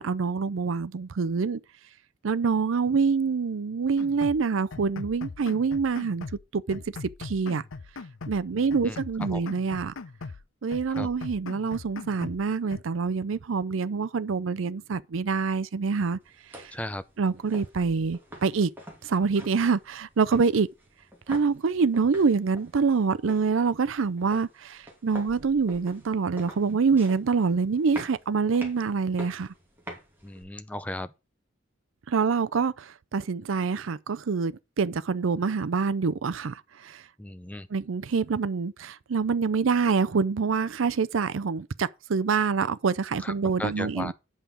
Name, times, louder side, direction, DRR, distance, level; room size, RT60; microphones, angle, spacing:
voice 1, 0.0-1.6 2.2-6.3 6.5-7.6 8.3-9.9 10.6-16.2 16.5-16.7 17.2-18.7 19.0-20.7 21.3-29.5 32.1-37.0 37.7-44.1, right 5 dB, 80° right, 0.5 m, -26 dB
sound 1, 4.0-4.4 4.7-6.4 6.7-8.4 8.7-10.4 10.7-12.4 12.7-12.8, left 4 dB, 85° left, 0.6 m, -40 dB
voice 2, 8.5-9.0 9.3-9.5 10.9-11.1 16.7-17.0 30.2-31.1 37.2-37.7 43.2-43.3 43.6-44.1, left 1 dB, 5° left, 0.5 m, -36 dB
sound 2, 16.2-30.4, equal, 10° right, 2.7 m, -47 dB
8.5 x 5.7 x 6.0 m
head